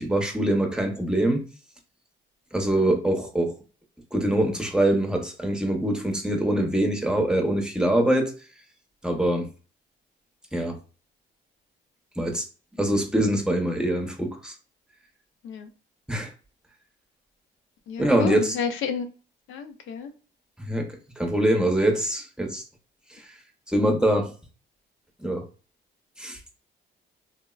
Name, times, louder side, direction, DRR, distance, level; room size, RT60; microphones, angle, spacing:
voice 1, 0.0-1.4 2.5-3.5 4.1-8.3 9.0-9.5 10.5-10.8 12.2-12.4 12.8-14.5 16.1-16.3 18.0-18.5 20.6-20.9 21.2-22.6 23.7-24.3 25.2-25.4 26.2-26.4, right 1 dB, 5° right, 0.7 m, -23 dB
voice 2, 17.9-19.1 19.5-20.1, left 6 dB, 80° left, 0.5 m, -31 dB
3.5 x 2.0 x 2.3 m
cardioid pair, 90°, 20 cm